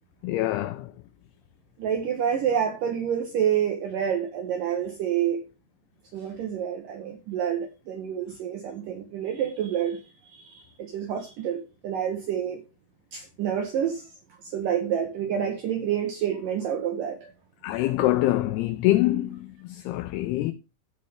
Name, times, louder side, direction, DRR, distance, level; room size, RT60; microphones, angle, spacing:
voice 1, 0.2-0.9 17.6-20.5, left 16 dB, 90° left, 2.3 m, -25 dB
voice 2, 1.8-5.4 6.1-12.6 13.1-14.1 14.4-17.3, right 9 dB, 80° right, 1.9 m, -28 dB
16.0 x 5.3 x 3.4 m
omnidirectional pair, 5.2 m